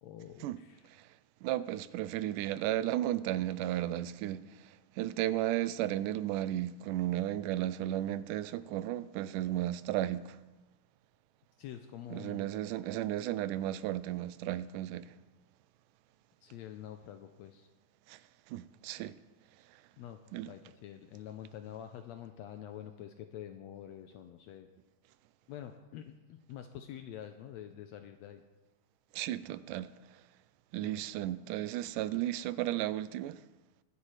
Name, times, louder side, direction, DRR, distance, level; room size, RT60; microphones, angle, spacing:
voice 1, 0.0-0.9 11.6-12.5 16.4-17.7 20.0-20.2 20.5-24.7 25.5-28.4 30.8-31.0, left 10 dB, 80° left, 1.6 m, -47 dB
voice 2, 1.4-10.4 12.1-15.2 18.1-18.2 18.5-19.2 19.7-19.8 20.3-20.5 29.1-30.2 30.7-33.4, right 13 dB, 90° right, 2.1 m, -34 dB
23.0 x 8.4 x 3.2 m
omnidirectional pair, 3.6 m